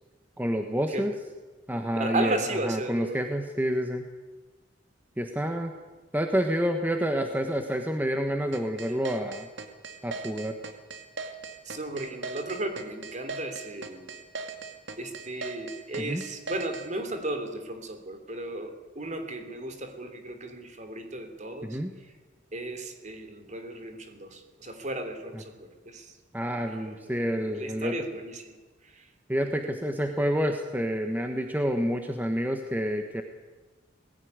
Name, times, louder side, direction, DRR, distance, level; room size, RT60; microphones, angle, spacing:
voice 1, 0.4-1.1 1.7-2.4 2.6-4.1 5.2-5.7 6.1-9.5 10.0-10.5 16.0-16.2 21.6-21.9 26.3-27.9 29.3-33.2, equal, 10° right, 5 dB, 1.3 m, -28 dB
voice 2, 2.0-3.2 8.9-9.0 11.6-14.1 15.0-22.1 22.5-26.2 26.5-27.2 27.5-28.6 28.8-29.1, right 2 dB, 40° right, 7 dB, 3.2 m, -35 dB
sound 1, 8.5-16.9, right 4 dB, 75° right, 2.4 m, -38 dB
19.5 x 16.5 x 9.6 m, 1.2 s
head